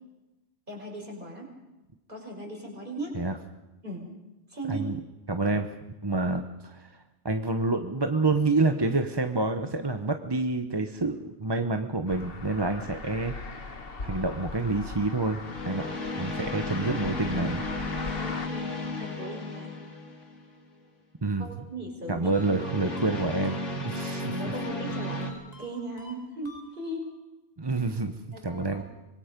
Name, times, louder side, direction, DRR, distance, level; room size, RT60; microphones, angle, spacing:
voice 1, 0.7-1.5 2.1-3.2 3.8-4.1 4.5-4.9 16.9-17.0 18.2-18.7 19.0-19.8 21.4-22.5 24.3-27.1 28.3-28.8, right 1 dB, 45° right, 0 dB, 5.5 m, -38 dB
voice 2, 5.3-5.7 6.0-6.9 7.2-13.4 14.0-15.4 15.6-15.9 16.2-17.6 21.2-21.5 22.1-24.3 27.6-28.2 28.4-28.8, right 3 dB, 25° right, 7 dB, 1.0 m, -28 dB
sound 1, 12.1-18.5, left 3 dB, 55° left, 1.7 m, -39 dB
sound 2, 13.4-13.7 15.4-20.5 22.2-25.3, left 2 dB, 90° left, 2.8 m, -34 dB
sound 3, 22.3-24.1 24.9-27.2, left 1 dB, 35° left, 2.8 m, -51 dB
25.5 x 21.0 x 5.3 m, 1.0 s
omnidirectional pair, 1.2 m